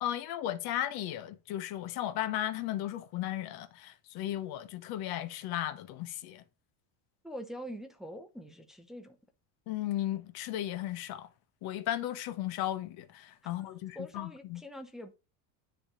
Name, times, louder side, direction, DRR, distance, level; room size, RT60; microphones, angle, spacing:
voice 1, 0.0-6.4 9.7-11.3 11.6-14.6, left 13 dB, 60° left, 0.9 m, -35 dB
voice 2, 7.2-9.2 13.4-15.2, equal, ahead, 0.7 m, -44 dB
9.9 x 3.5 x 4.8 m
cardioid pair, 140°, 42 cm